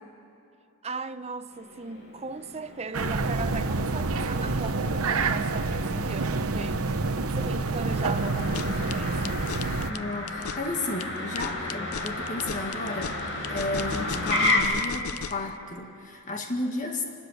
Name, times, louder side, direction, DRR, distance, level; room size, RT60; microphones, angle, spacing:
voice 1, 0.8-6.8 7.3-9.5, right 3 dB, 30° right, 0.6 m, -37 dB
Motor vehicle (road), 1.5-14.6, left 2 dB, 65° left, 4.6 m, -34 dB
sound 1, 2.9-9.9, right 3 dB, 80° right, 0.9 m, -28 dB
sound 2, 8.4-15.5, left 7 dB, 80° left, 0.6 m, -37 dB
voice 2, 9.9-17.0, left 2 dB, 35° left, 1.9 m, -33 dB
29.0 x 12.5 x 8.3 m
head